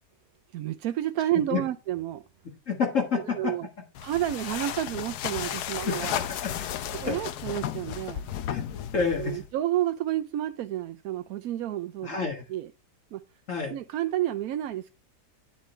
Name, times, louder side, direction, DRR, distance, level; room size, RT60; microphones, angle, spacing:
voice 1, 0.5-2.2 3.1-3.7 4.0-6.2 6.9-8.2 9.2-12.2 12.5-12.7 13.1-13.2 13.7-14.9, right 13 dB, 70° right, 1.0 m, -30 dB
voice 2, 2.7-3.5 5.8-6.5 7.1-7.2 8.5-9.4 12.0-12.5 13.5-13.7, left 5 dB, 50° left, 2.0 m, -29 dB
sound 1, 3.9-9.5, left 10 dB, 70° left, 1.2 m, -34 dB
9.9 x 7.5 x 3.3 m
omnidirectional pair, 1.8 m